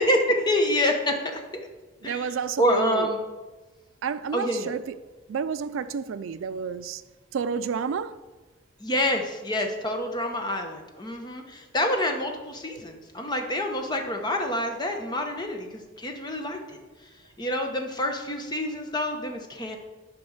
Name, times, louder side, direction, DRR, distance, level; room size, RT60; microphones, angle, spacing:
voice 1, 0.0-1.4 2.0-3.2 4.3-4.7 8.8-16.8 17.4-19.8, left 1 dB, 20° left, 1.0 m, -27 dB
voice 2, 2.0-3.1 4.0-4.9 5.3-7.0 7.3-8.2, right 6 dB, 85° right, 0.4 m, -30 dB
9.6 x 5.2 x 6.4 m
head